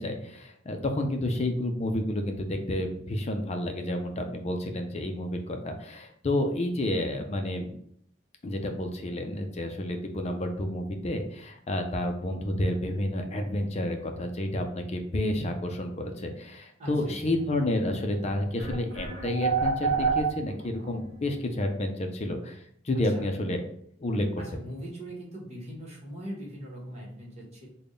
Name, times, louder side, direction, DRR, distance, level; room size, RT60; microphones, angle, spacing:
voice 1, 0.0-7.7 8.4-22.6 22.8-23.6 24.0-24.3, left 1 dB, 35° left, 5 dB, 0.5 m, -30 dB
voice 2, 16.8-17.2 23.1-23.3 24.4-27.7, equal, 35° right, -4 dB, 1.2 m, -40 dB
sound 1, 18.0-18.1 18.6-20.9, right 5 dB, 55° right, 0.8 m, -27 dB
3.5 x 2.2 x 3.8 m, 0.65 s
head